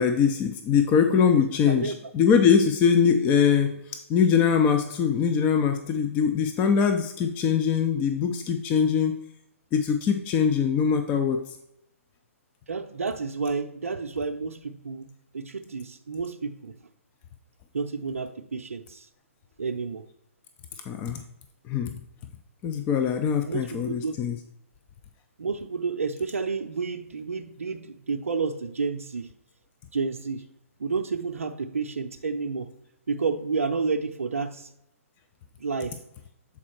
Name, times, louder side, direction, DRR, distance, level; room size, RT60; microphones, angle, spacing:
voice 1, 0.0-9.2 9.7-11.6 20.9-21.2 21.7-21.9 22.6-24.4, left 7 dB, 20° left, 6 dB, 0.4 m, -22 dB
voice 2, 1.3-2.0 12.7-15.1 15.3-16.7 17.7-19.1 19.6-20.0 23.4-24.1 25.4-29.3 29.9-30.4 30.8-32.7 33.1-34.7 35.6-36.0, right 4 dB, 70° right, 5 dB, 0.6 m, -30 dB
7.2 x 4.3 x 4.4 m, 0.81 s
figure-of-eight pair, 130°, 8 cm